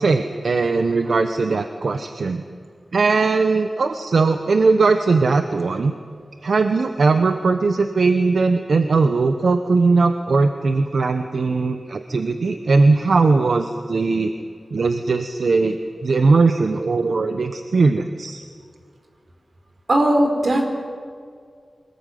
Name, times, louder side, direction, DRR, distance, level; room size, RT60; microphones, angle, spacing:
voice 1, 0.0-2.4 2.9-5.9 6.4-14.3 14.7-18.4, right 4 dB, 75° right, 7 dB, 1.1 m, -19 dB
voice 2, 19.9-20.7, right 1 dB, 50° right, 4 dB, 4.3 m, -17 dB
25.0 x 19.0 x 9.4 m, 2.2 s
wide cardioid pair, 105°, 0 cm